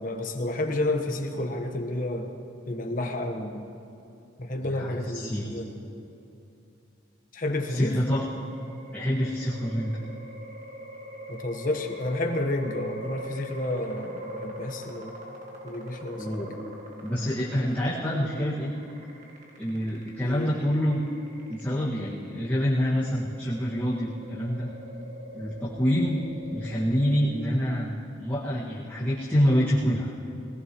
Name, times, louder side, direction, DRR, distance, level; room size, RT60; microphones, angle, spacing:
voice 1, 0.0-2.3 2.7-3.6 4.4-5.7 7.3-8.0 11.3-15.2 15.6-16.4 20.2-20.6, left 1 dB, 45° left, 3 dB, 1.2 m, -30 dB
voice 2, 4.6-5.5 7.7-8.2 8.9-10.0 16.2-16.6 17.0-18.7 19.6-21.0 21.5-24.7 25.3-26.2 26.5-30.1, equal, 10° left, -10 dB, 1.9 m, -26 dB
sound 1, 7.6-27.4, equal, 40° right, 1.9 m, -43 dB
22.0 x 18.5 x 3.1 m, 2.8 s
head